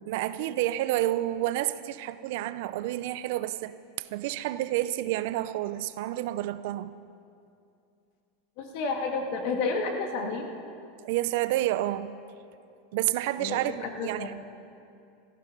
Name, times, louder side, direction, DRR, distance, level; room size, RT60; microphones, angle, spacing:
voice 1, 0.1-6.9 11.0-12.1 12.9-14.3, right 15 dB, 65° right, 0.6 m, -29 dB
voice 2, 8.6-10.5 13.4-14.3, left 4 dB, 60° left, 2.2 m, -31 dB
17.0 x 14.0 x 5.4 m
supercardioid pair, 130°, 0 cm